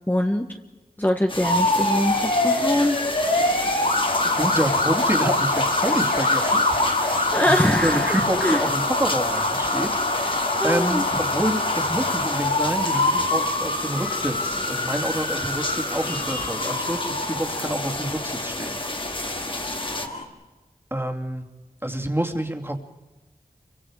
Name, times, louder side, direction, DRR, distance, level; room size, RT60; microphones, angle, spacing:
voice 1, 0.1-0.5 1.0-3.0 7.3-8.6 10.6-11.0, left 1 dB, 10° left, 2 dB, 1.5 m, -23 dB
sound 1, 1.3-20.1, left 2 dB, 35° left, 2.1 m, -31 dB
sound 2, 1.4-20.2, left 2 dB, 70° left, 4.7 m, -25 dB
voice 2, 4.3-6.6 7.0-18.8 19.2-19.7 20.9-21.5 21.8-22.8, right 1 dB, 15° right, 4 dB, 2.6 m, -28 dB
28.0 x 24.5 x 5.0 m, 1.2 s
wide cardioid pair, 55°, 15 cm